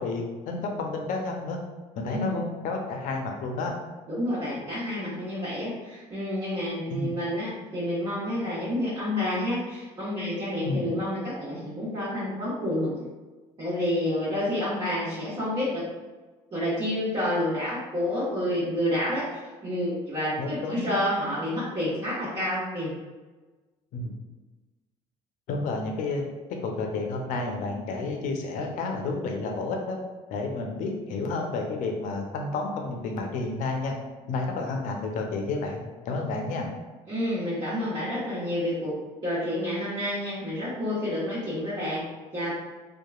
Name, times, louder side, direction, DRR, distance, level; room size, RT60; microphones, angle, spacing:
voice 1, 0.0-1.6 2.0-3.7 6.9-7.1 10.6-10.9 20.4-20.9 23.9-24.1 25.5-26.2 26.6-30.0 30.3-33.9 34.3-36.7, left 3 dB, 65° left, 2 dB, 0.6 m, -30 dB
voice 2, 2.1-2.4 4.1-12.9 13.6-15.8 16.5-22.9 37.1-38.9 39.2-42.1 42.3-42.5, left 1 dB, 35° right, -11 dB, 1.3 m, -29 dB
2.9 x 2.3 x 2.3 m, 1.3 s
supercardioid pair, 80°, 14 cm